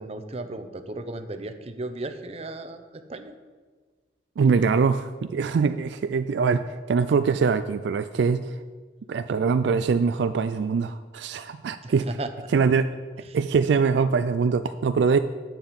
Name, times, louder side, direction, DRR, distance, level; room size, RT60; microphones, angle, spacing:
voice 1, 0.0-3.3 11.8-12.5 13.2-13.4, right 2 dB, 35° right, 8 dB, 0.7 m, -36 dB
voice 2, 4.4-8.5 9.1-12.0 12.5-12.9 13.3-15.2, right 5 dB, 70° right, 11 dB, 0.3 m, -23 dB
9.6 x 7.5 x 5.2 m, 1.4 s
head